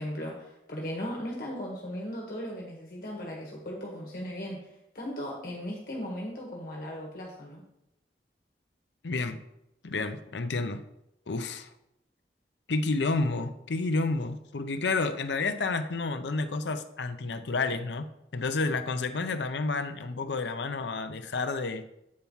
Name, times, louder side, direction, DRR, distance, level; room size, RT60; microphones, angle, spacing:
voice 1, 0.0-4.6 4.9-7.6, equal, 50° left, -2 dB, 1.7 m, -37 dB
voice 2, 9.0-9.4 9.8-10.8 11.3-11.7 12.7-21.8, left 3 dB, 80° left, 10 dB, 0.7 m, -30 dB
8.6 x 4.5 x 5.6 m, 0.84 s
head